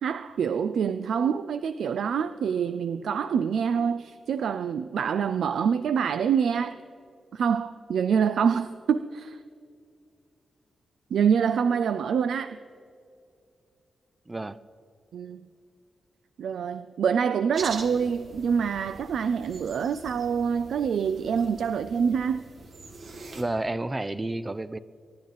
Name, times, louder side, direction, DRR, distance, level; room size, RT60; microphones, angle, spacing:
voice 1, 0.0-6.8 7.3-9.4 11.1-12.6 15.1-15.5 16.4-22.4, right 7 dB, 85° right, 0.4 m, -26 dB
voice 2, 14.3-14.6 23.3-24.8, right 2 dB, 15° right, 0.4 m, -30 dB
sound 1, 17.5-23.4, right 3 dB, 60° right, 2.1 m, -43 dB
24.0 x 10.5 x 4.0 m
wide cardioid pair, 130°, 0 cm